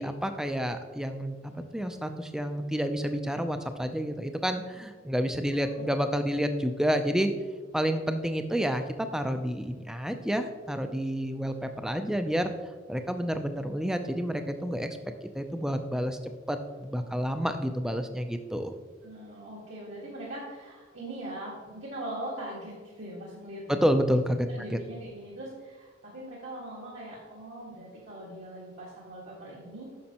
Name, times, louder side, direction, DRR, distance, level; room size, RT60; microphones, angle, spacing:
voice 1, 0.0-7.3 7.7-12.5 12.9-14.9 15.3-16.2 16.5-18.7 23.7-24.5 24.7-24.8, equal, 5° right, 7 dB, 0.4 m, -29 dB
voice 2, 5.5-5.9 19.0-24.0 24.5-29.9, right 1 dB, 75° right, -7 dB, 1.7 m, -41 dB
9.5 x 6.3 x 2.9 m, 1.5 s
head